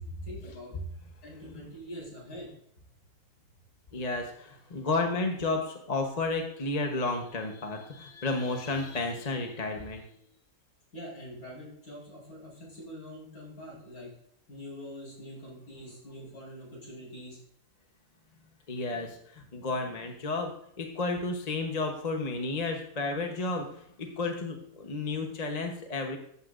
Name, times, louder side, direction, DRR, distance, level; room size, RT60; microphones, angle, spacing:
voice 1, 0.2-0.7 1.2-2.5 10.9-14.1 14.5-17.4, equal, 65° left, -5 dB, 5.1 m, -44 dB
voice 2, 3.9-10.0 18.7-26.2, left 3 dB, 30° left, 3 dB, 0.9 m, -32 dB
14.0 x 8.4 x 2.5 m, 0.67 s
omnidirectional pair, 1.7 m